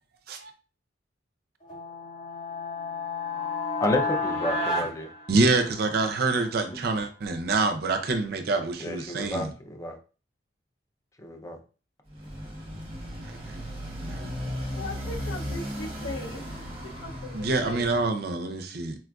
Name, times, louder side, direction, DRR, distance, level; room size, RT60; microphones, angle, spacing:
sound 1, 1.6-6.0, left 3 dB, 45° left, 1.8 m, -31 dB
voice 1, 3.8-5.1 8.8-10.0 11.2-11.6, left 1 dB, 15° left, 0.5 m, -30 dB
voice 2, 5.3-9.5 13.5-13.6 14.0-14.3 17.3-19.0, right 3 dB, 55° right, 0.5 m, -26 dB
Motorcycle, 12.1-18.1, equal, 30° right, 0.8 m, -36 dB
voice 3, 14.7-16.4 17.0-18.0, left 2 dB, 90° left, 0.6 m, -38 dB
4.3 x 2.4 x 2.3 m
head